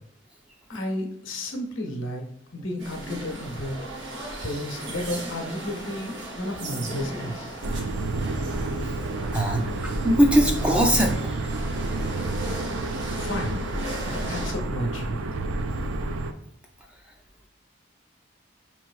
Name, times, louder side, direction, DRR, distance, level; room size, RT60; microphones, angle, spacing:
voice 1, 0.7-2.2 2.5-7.6 13.2-13.6 14.1-15.2, left 1 dB, 80° left, 2 dB, 0.8 m, -32 dB
sound 1, 2.8-14.5, right 1 dB, 65° right, 0.8 m, -36 dB
sound 2, 7.6-16.3, right 2 dB, 85° right, 0.4 m, -29 dB
voice 2, 9.3-11.1, equal, 5° right, 0 dB, 0.4 m, -21 dB
5.4 x 3.0 x 2.3 m, 0.70 s
head